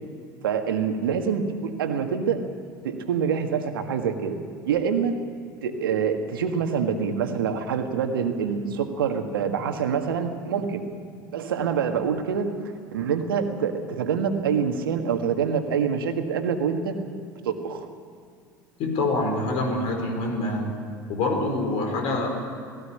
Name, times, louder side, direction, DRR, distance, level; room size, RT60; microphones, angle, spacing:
voice 1, 0.4-2.4 2.8-4.4 4.7-5.2 5.6-10.9 11.3-17.0 17.4-17.9, right 6 dB, 75° right, 6 dB, 1.7 m, -26 dB
voice 2, 18.8-20.7 21.1-22.3, left 2 dB, 55° left, 3 dB, 4.8 m, -25 dB
17.5 x 17.5 x 9.9 m, 2.3 s
hypercardioid pair, 75°, 12 cm